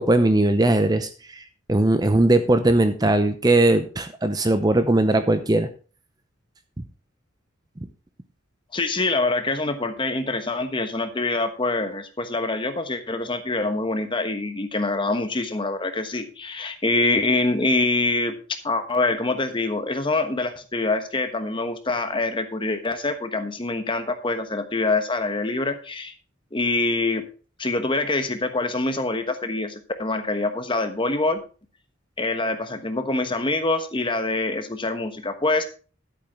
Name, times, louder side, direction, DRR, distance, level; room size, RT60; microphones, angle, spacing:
voice 1, 0.0-1.4 1.7-5.7, right 2 dB, 20° right, 10 dB, 0.7 m, -19 dB
voice 2, 8.7-18.3 18.6-26.1 26.5-27.3 27.6-31.4 32.2-35.7, left 2 dB, 25° left, 8 dB, 1.2 m, -25 dB
11.0 x 8.7 x 3.6 m, 0.36 s
head